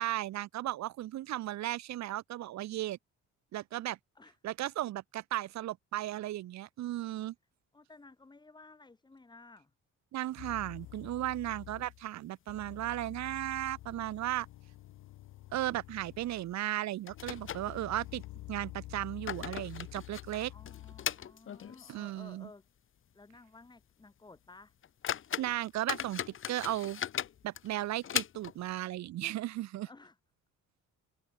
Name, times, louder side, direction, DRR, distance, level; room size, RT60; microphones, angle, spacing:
voice 1, 0.0-3.0 3.5-4.0 4.4-7.3 10.1-14.5 15.5-18.2 18.5-20.5 21.9-22.5 25.4-26.2 26.5-27.0 27.4-29.9, right 14 dB, 65° right, 0.6 m, -35 dB
voice 2, 7.7-9.7 20.5-22.6 23.1-24.7 29.8-30.2, left 3 dB, 15° left, 0.9 m, -55 dB
sound 1, 10.3-11.3 11.6-11.7 12.1-12.2 12.8-13.3 13.6-13.7 14.3-14.5 14.8-15.0 16.3-16.4 17.1-18.3 18.9-22.1 22.5-22.6 23.1-23.2 23.7-23.8 24.4-24.5 24.8-28.7, left 9 dB, 45° left, 0.8 m, -39 dB
sound 2, 10.4-12.1 12.5-16.6 17.1-21.3, left 16 dB, 85° left, 1.1 m, -49 dB
cardioid pair, 90°, 30 cm